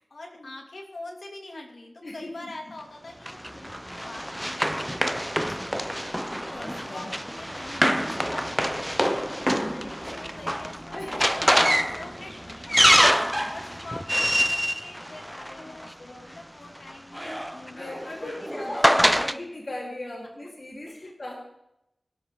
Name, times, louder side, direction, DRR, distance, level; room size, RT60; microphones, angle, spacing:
voice 1, 0.1-4.6 4.9-6.2 6.6-12.3 12.7-19.5 20.9-21.3, left 2 dB, 85° left, 2 dB, 2.7 m, -45 dB
voice 2, 2.0-2.5 6.3-7.1 9.0-9.7 10.9-13.5 14.5-14.8 15.4-15.7 16.0-16.3 17.8-21.3, left 1 dB, 60° left, -3 dB, 3.9 m, -40 dB
Run, 3.3-15.9 16.9-19.4, equal, ahead, 0.6 m, -25 dB
22.5 x 12.5 x 3.9 m, 0.84 s
wide cardioid pair, 70°, 0 cm